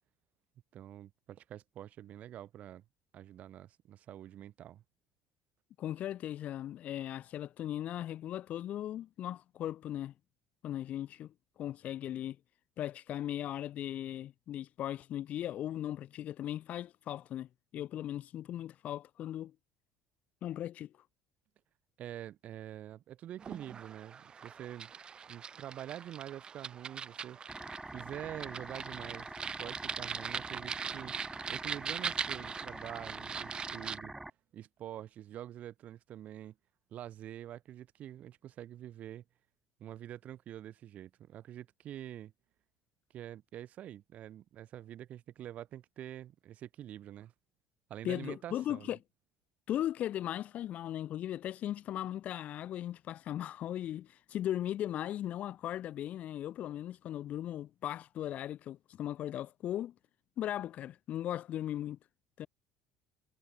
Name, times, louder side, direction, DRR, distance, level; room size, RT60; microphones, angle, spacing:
voice 1, 0.7-2.8 3.1-4.8 22.0-24.9 25.3-27.6 27.9-29.3 29.6-31.1 31.5-34.1 34.5-36.6 36.9-39.2 39.8-42.3 43.1-47.3 47.9-48.9, right 11 dB, 40° right, 1.7 m, -46 dB
voice 2, 5.8-10.1 10.6-12.4 12.8-19.5 20.4-20.9 48.0-49.0 49.7-59.9 60.4-62.0 62.4-62.5, left 12 dB, 40° left, 1.3 m, -38 dB
sound 1, 23.4-34.0, right 7 dB, 25° right, 1.4 m, -41 dB
sound 2, 27.5-34.3, right 2 dB, 5° right, 1.3 m, -45 dB
cardioid pair, 175°, 4 cm